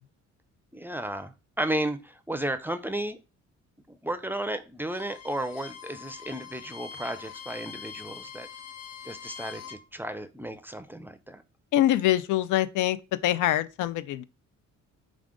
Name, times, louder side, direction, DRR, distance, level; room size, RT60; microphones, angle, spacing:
voice 1, 0.7-3.2 3.9-8.5 9.0-11.4, right 1 dB, 5° right, 0.4 m, -33 dB
Bowed string instrument, 4.8-9.8, left 7 dB, 60° left, 0.9 m, -44 dB
voice 2, 11.7-13.0 13.2-14.2, left 13 dB, 80° left, 0.5 m, -24 dB
4.9 x 2.4 x 3.7 m
cardioid pair, 90°, 30 cm